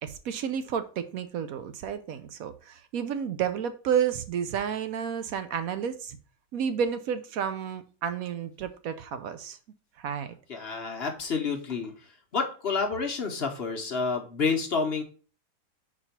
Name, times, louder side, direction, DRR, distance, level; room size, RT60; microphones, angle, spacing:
voice 1, 0.0-6.2 6.5-9.6 10.0-10.4, right 8 dB, 70° right, 10 dB, 0.9 m, -31 dB
voice 2, 10.5-15.0, left 5 dB, 45° left, 3 dB, 1.0 m, -29 dB
4.5 x 4.3 x 5.7 m, 0.37 s
omnidirectional pair, 1.8 m